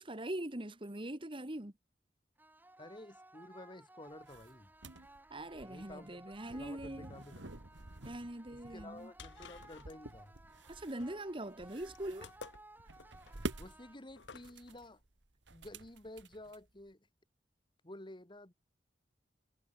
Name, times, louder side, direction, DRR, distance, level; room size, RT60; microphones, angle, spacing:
voice 1, 0.0-1.7 5.3-7.1 8.0-9.1 10.7-12.3, right 1 dB, 30° right, 1.9 m, -42 dB
sound 1, 2.4-14.4, right 2 dB, 10° right, 3.7 m, -59 dB
voice 2, 2.8-4.7 5.6-6.3 6.5-7.6 8.5-10.3 13.6-15.0 15.5-17.1 17.8-18.5, left 1 dB, 25° left, 2.1 m, -52 dB
sound 2, 4.1-16.9, right 2 dB, 85° right, 2.0 m, -49 dB
sound 3, 8.8-14.7, left 5 dB, 80° left, 1.0 m, -55 dB
head